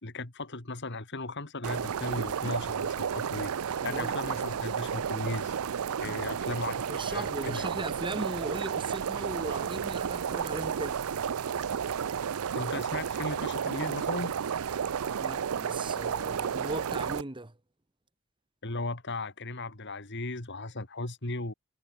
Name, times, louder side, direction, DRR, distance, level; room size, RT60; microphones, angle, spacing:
voice 1, 0.0-3.5 3.8-5.5 6.0-7.7 12.5-14.3 18.6-21.5, left 2 dB, 55° left, 2.7 m, -36 dB
sound 1, 1.6-17.2, right 7 dB, 75° right, 0.5 m, -32 dB
voice 2, 3.8-4.2 6.0-6.2 6.9-11.0 15.1-17.5, right 2 dB, 20° right, 1.3 m, -38 dB
head